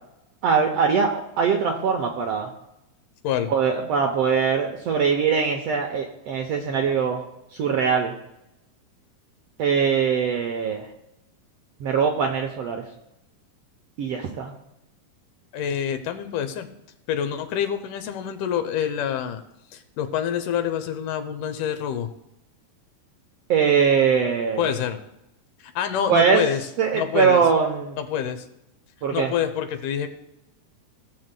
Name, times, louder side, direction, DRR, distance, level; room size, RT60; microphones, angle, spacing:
voice 1, 0.4-2.5 3.5-7.2 7.5-8.1 9.6-10.9 11.8-12.8 14.0-14.5 23.5-24.7 26.1-26.4 26.8-28.0 29.0-29.3, right 6 dB, 75° right, 3 dB, 1.5 m, -22 dB
voice 2, 15.5-16.7 17.1-19.4 19.7-22.1 24.6-25.0 25.6-26.6 26.9-27.4 28.0-28.5 29.1-30.1, left 9 dB, 85° left, 8 dB, 2.4 m, -27 dB
17.5 x 7.6 x 2.2 m, 0.85 s
omnidirectional pair, 3.6 m